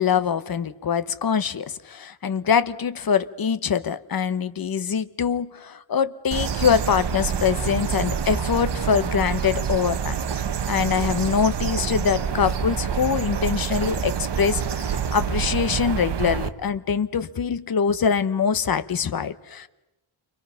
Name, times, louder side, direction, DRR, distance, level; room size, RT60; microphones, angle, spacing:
voice 1, 0.0-10.2 10.7-19.7, left 7 dB, 45° left, 13 dB, 1.0 m, -24 dB
sound 1, 6.3-16.5, right 7 dB, 55° right, 1.2 m, -27 dB
29.0 x 24.5 x 5.7 m, 0.97 s
wide cardioid pair, 145°, 49 cm